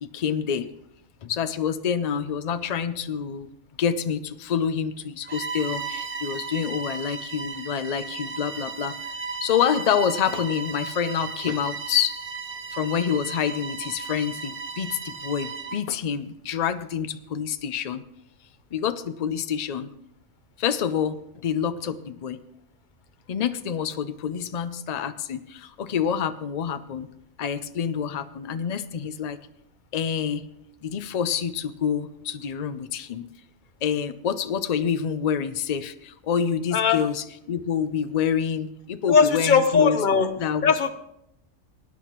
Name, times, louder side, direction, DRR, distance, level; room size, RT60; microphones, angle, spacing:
voice 1, 0.0-0.7 1.2-3.5 3.8-8.9 9.4-12.2 12.7-18.0 18.7-19.9 20.6-22.4 23.3-27.1 27.4-29.4 29.9-30.4 30.8-33.3 33.8-40.0 40.4-40.7, left 8 dB, 75° left, 11 dB, 0.3 m, -27 dB
Bowed string instrument, 5.2-15.9, right 4 dB, 45° right, 0.4 m, -35 dB
voice 2, 36.7-37.0 39.1-40.3 40.6-40.9, left 5 dB, 45° left, 10 dB, 0.8 m, -19 dB
19.5 x 10.0 x 3.0 m, 0.79 s
omnidirectional pair, 1.3 m